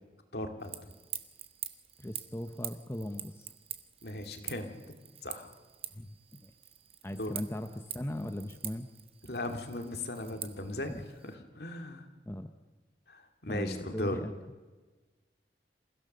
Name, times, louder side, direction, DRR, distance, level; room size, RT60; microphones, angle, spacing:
voice 1, 0.3-0.8 4.0-4.7 5.2-5.5 7.2-7.3 9.3-10.9 11.2-12.1 13.1-14.2, left 1 dB, 60° left, 5 dB, 2.3 m, -37 dB
sound 1, 0.6-11.4, right 10 dB, 35° right, 1.1 m, -46 dB
voice 2, 2.0-3.5 5.9-6.5 7.0-8.9 10.9-11.0 12.3-12.5 13.5-14.3, left 1 dB, 15° left, 7 dB, 0.8 m, -39 dB
28.0 x 16.0 x 6.7 m, 1.3 s
head